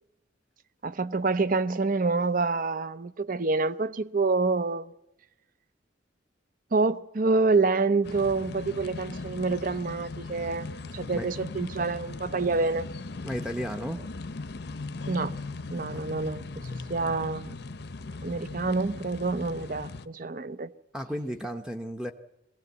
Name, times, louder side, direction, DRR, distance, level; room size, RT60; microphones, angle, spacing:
voice 1, 0.8-4.9 6.7-10.7 10.9-12.9 15.1-15.4 15.7-16.6 16.9-17.5 18.2-20.7, right 3 dB, 45° right, 0.7 m, -27 dB
sound 1, 8.0-20.1, left 3 dB, 60° left, 0.7 m, -39 dB
voice 2, 13.2-14.0 15.9-16.0 20.9-22.1, equal, 5° right, 0.8 m, -33 dB
21.5 x 17.0 x 8.2 m
head